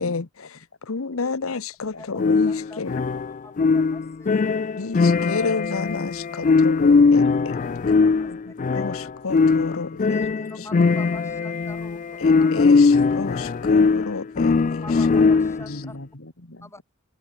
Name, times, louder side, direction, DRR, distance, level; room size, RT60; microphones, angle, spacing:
voice 1, 0.0-3.0 4.8-7.3 8.7-10.2 10.6-10.7 12.2-15.1 15.7-15.8, left 4 dB, 90° left, 0.9 m, -31 dB
sound 1, 2.2-15.7, left 4 dB, 40° left, 0.4 m, -20 dB
voice 2, 2.5-3.0 3.4-4.7 7.5-7.6 8.0-8.3 10.1-12.0 12.2-12.7 14.8-16.0 16.6-16.8, left 2 dB, 15° left, 7.6 m, -44 dB
voice 3, 6.4-9.1 10.6-10.7 15.6-16.8, left 1 dB, 65° left, 2.8 m, -41 dB
head